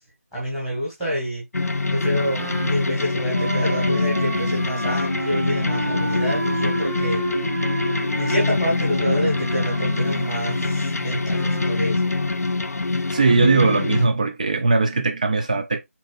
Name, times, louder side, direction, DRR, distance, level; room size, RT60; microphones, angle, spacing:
voice 1, 0.3-1.4 1.9-7.2 8.2-12.1, equal, 5° right, 1.6 m, -27 dB
sound 1, 1.5-14.1, left 3 dB, 75° left, 0.6 m, -24 dB
Wind instrument woodwind instrument, 2.3-11.8, right 2 dB, 65° right, 1.0 m, -31 dB
voice 2, 13.1-15.8, right 3 dB, 30° right, 0.7 m, -19 dB
4.3 x 4.1 x 2.6 m
figure-of-eight pair, 170°, 8 cm